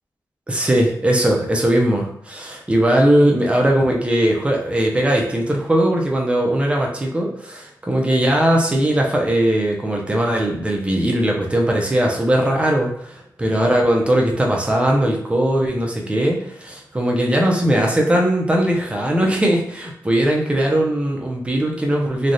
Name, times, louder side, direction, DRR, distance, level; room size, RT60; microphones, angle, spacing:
voice 1, 0.5-22.3, right 1 dB, 15° right, 0 dB, 0.6 m, -19 dB
3.2 x 2.3 x 2.6 m, 0.66 s
wide cardioid pair, 115°, 7 cm